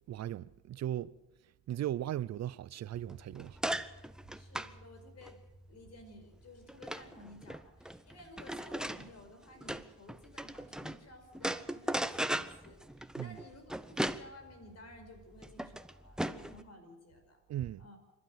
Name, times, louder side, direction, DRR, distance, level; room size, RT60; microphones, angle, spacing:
voice 1, 0.1-1.1 1.7-3.6 13.2-13.4 17.5-17.8, right 12 dB, 60° right, 0.6 m, -37 dB
sound 1, 2.9-11.0 11.3-16.6, right 1 dB, ahead, 0.8 m, -38 dB
voice 2, 4.3-5.4 5.7-17.4 17.8-18.0, left 1 dB, 55° left, 5.4 m, -55 dB
26.5 x 12.0 x 8.0 m
cardioid pair, 90°, 30 cm